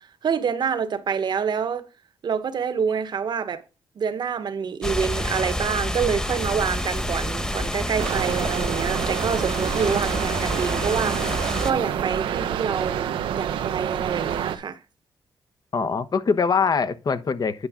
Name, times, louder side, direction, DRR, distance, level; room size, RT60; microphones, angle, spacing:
voice 1, 0.0-1.8 2.2-3.6 4.0-14.8, right 6 dB, 60° right, 1.3 m, -27 dB
sound 1, 4.8-11.7, left 1 dB, 10° left, 1.3 m, -28 dB
sound 2, 6.4-12.1, right 2 dB, 20° right, 0.9 m, -39 dB
sound 3, 8.0-14.6, right 9 dB, 85° right, 0.8 m, -28 dB
voice 2, 15.7-17.7, left 5 dB, 50° left, 1.0 m, -23 dB
9.8 x 5.7 x 3.7 m
cardioid pair, 65°, 8 cm